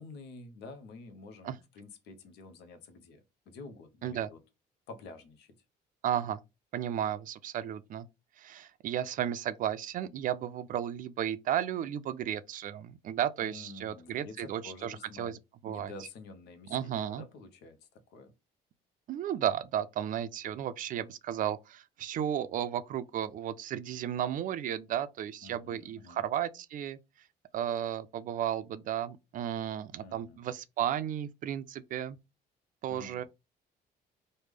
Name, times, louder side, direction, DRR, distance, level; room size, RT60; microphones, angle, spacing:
voice 1, 0.0-4.4 4.9-5.5 13.4-15.4 15.7-18.3 25.4-26.3 30.0-30.4 32.9-33.2, left 3 dB, 80° left, 0.7 m, -49 dB
voice 2, 6.0-6.4 6.7-8.1 8.4-15.4 15.6-15.9 16.7-17.2 19.1-27.0 27.5-32.2 32.8-33.2, right 10 dB, 50° right, 0.4 m, -34 dB
3.2 x 2.1 x 3.4 m
cardioid pair, 110°, 17 cm